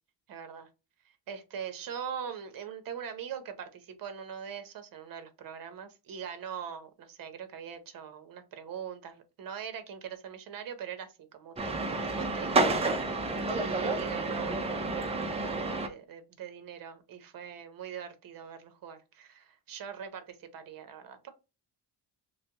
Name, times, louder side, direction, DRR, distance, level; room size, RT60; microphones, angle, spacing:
voice 1, 0.3-0.7 1.3-21.3, right 7 dB, 50° right, 9 dB, 0.8 m, -42 dB
sound 1, 11.6-15.9, right 3 dB, 15° right, 0.3 m, -30 dB
3.3 x 3.1 x 2.7 m, 0.29 s
cardioid pair, 175°, 42 cm